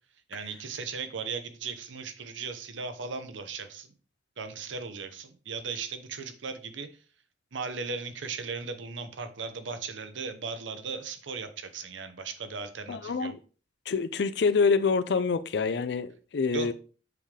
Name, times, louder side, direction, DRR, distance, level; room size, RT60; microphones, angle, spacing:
voice 1, 0.3-3.9 4.4-6.9 7.5-13.3 16.5-16.7, right 5 dB, 90° right, 0.8 m, -37 dB
voice 2, 12.9-13.4 13.9-16.7, left 5 dB, 60° left, 0.4 m, -26 dB
7.7 x 3.7 x 3.3 m
head